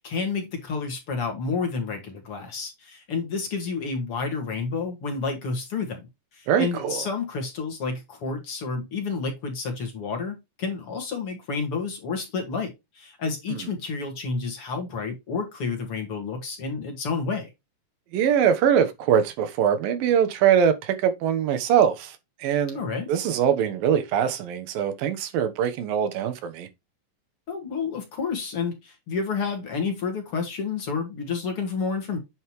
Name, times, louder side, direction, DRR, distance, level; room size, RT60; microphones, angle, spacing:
voice 1, 0.0-6.1 6.3-17.5 22.7-23.1 27.5-32.2, left 4 dB, 45° left, 2.6 m, -30 dB
voice 2, 6.5-7.0 18.1-22.1 22.4-22.8 23.1-26.7, right 8 dB, 90° right, 3.0 m, -22 dB
9.2 x 5.5 x 3.1 m
omnidirectional pair, 3.9 m